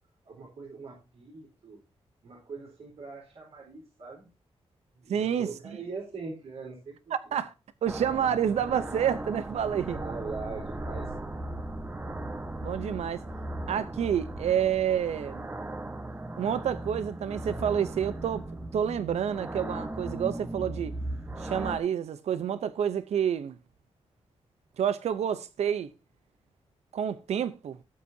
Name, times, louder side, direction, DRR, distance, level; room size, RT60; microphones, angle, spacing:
voice 1, 0.2-1.8 2.2-4.3 5.0-7.1 9.9-11.1 11.5-11.6, right 4 dB, 70° right, 4.2 m, -42 dB
voice 2, 5.1-5.5 7.3-7.5 7.8-10.0 12.6-13.2 13.7-15.4 16.4-18.4 18.7-20.9 21.4-23.6 24.8-25.9 26.9-27.8, right 9 dB, 85° right, 0.7 m, -28 dB
sound 1, 7.9-21.8, right 1 dB, 20° right, 1.2 m, -37 dB
17.0 x 8.4 x 2.7 m
wide cardioid pair, 145°, 11 cm